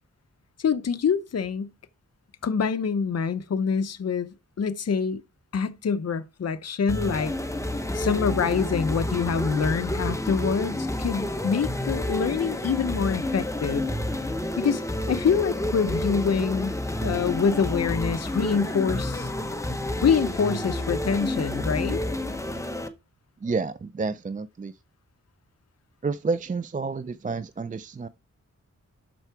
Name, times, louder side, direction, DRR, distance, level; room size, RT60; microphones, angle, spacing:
voice 1, 0.6-1.7 2.4-5.2 5.5-7.3 7.9-13.8 14.6-14.8 15.1-16.7 17.0-19.3 20.0-22.0, left 6 dB, 55° left, 0.7 m, -25 dB
sound 1, 6.9-22.9, left 1 dB, 10° left, 0.8 m, -29 dB
voice 2, 23.4-24.7 26.0-28.1, right 4 dB, 25° right, 0.4 m, -29 dB
12.5 x 4.6 x 4.6 m
wide cardioid pair, 120°, 30 cm